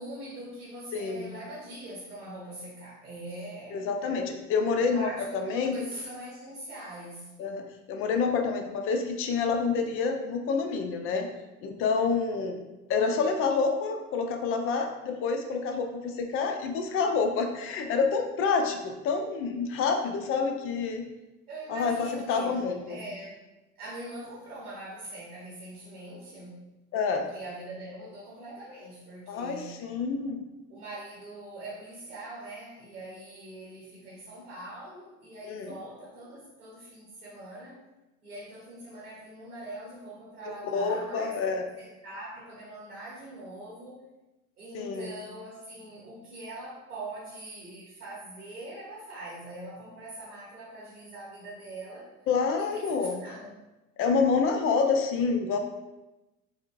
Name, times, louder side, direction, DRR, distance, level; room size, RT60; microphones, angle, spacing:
voice 1, 0.0-3.8 4.8-7.3 21.5-23.4 23.8-26.7 27.3-29.8 30.7-37.8 38.2-44.0 44.6-52.1 52.6-53.5, right 1 dB, 90° right, -5 dB, 0.8 m, -42 dB
voice 2, 0.9-1.3 3.7-5.7 7.4-11.3 11.6-12.6 12.9-21.0 21.7-23.0 26.9-27.3 29.3-30.4 35.4-35.7 40.6-41.6 44.7-45.1 52.3-53.2 54.0-55.6, left 5 dB, 35° left, 5 dB, 0.4 m, -28 dB
4.3 x 2.1 x 2.3 m, 1.0 s
hypercardioid pair, 75°, 43 cm